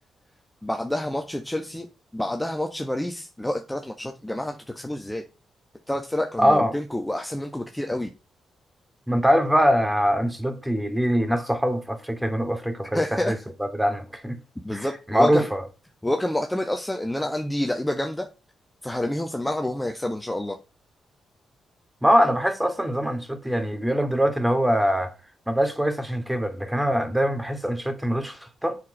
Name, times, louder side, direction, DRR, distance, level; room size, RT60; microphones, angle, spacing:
voice 1, 0.6-1.9 2.1-5.2 5.9-8.1 12.9-13.4 14.6-15.5 16.0-18.3 18.8-20.6, left 1 dB, 10° left, 1.4 m, -28 dB
voice 2, 6.4-6.8 9.1-14.4 14.7-15.6 22.0-25.1 25.5-28.8, equal, 10° right, 2.6 m, -23 dB
7.2 x 6.4 x 5.4 m
hypercardioid pair, 40°, 0 cm